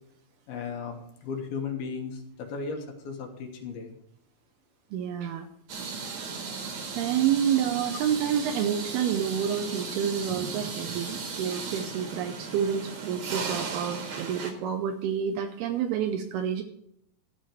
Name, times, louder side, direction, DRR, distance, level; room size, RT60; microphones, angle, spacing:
voice 1, 0.5-3.9, left 5 dB, 70° left, 3 dB, 3.1 m, -36 dB
voice 2, 4.9-5.5 6.0-6.4 6.9-16.6, right 8 dB, 80° right, 6 dB, 2.5 m, -29 dB
sound 1, 5.7-14.5, right 4 dB, 50° right, 2.5 m, -36 dB
13.0 x 5.0 x 9.0 m, 0.74 s
omnidirectional pair, 4.9 m